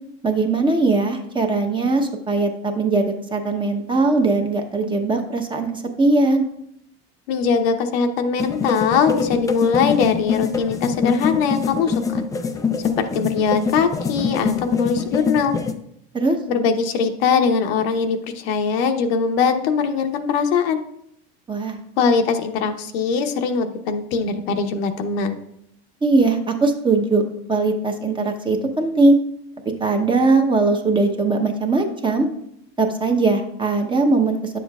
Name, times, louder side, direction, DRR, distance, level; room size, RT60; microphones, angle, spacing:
voice 1, 0.2-6.5 16.1-16.4 21.5-21.8 26.0-27.2 27.5-29.2 29.8-32.3 32.8-34.6, right 3 dB, 15° right, 4 dB, 0.8 m, -20 dB
voice 2, 7.3-12.2 13.0-15.5 16.5-20.8 22.0-25.4, left 5 dB, 80° left, 5 dB, 0.9 m, -21 dB
sound 1, 8.4-15.7, left 6 dB, 10° left, 0.3 m, -24 dB
9.8 x 7.1 x 2.4 m, 0.73 s
supercardioid pair, 130°, 30 cm